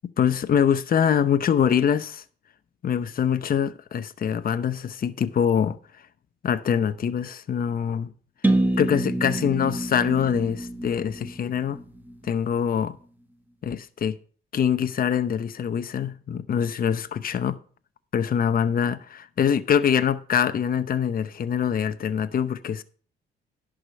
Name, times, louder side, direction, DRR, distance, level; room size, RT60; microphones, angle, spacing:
voice 1, 0.2-2.2 2.8-5.8 6.4-8.1 8.8-11.8 12.2-13.0 13.6-14.2 14.5-17.6 18.1-22.8, left 8 dB, 45° left, 0.8 m, -24 dB
sound 1, 8.4-12.3, right 1 dB, 10° right, 1.3 m, -27 dB
11.0 x 5.0 x 6.5 m
cardioid pair, 90°, 20 cm